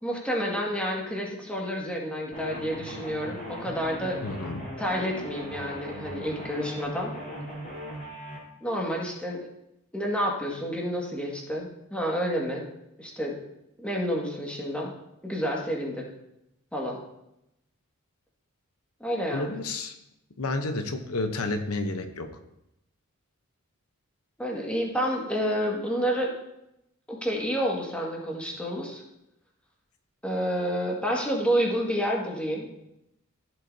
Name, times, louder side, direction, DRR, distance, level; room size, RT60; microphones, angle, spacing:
voice 1, 0.0-4.2 4.8-7.1 8.6-9.5 9.9-12.6 13.0-13.3 13.8-14.9 15.2-16.0 16.7-17.0 19.0-19.6 24.4-26.3 27.1-29.0 30.2-32.7, equal, 5° left, -2 dB, 1.9 m, -29 dB
sound 1, 2.3-8.4, equal, 40° left, 4.0 m, -39 dB
voice 2, 4.2-4.6 19.3-19.9 20.4-22.3, left 2 dB, 90° left, 7 dB, 0.9 m, -30 dB
15.0 x 7.9 x 2.8 m, 0.84 s
head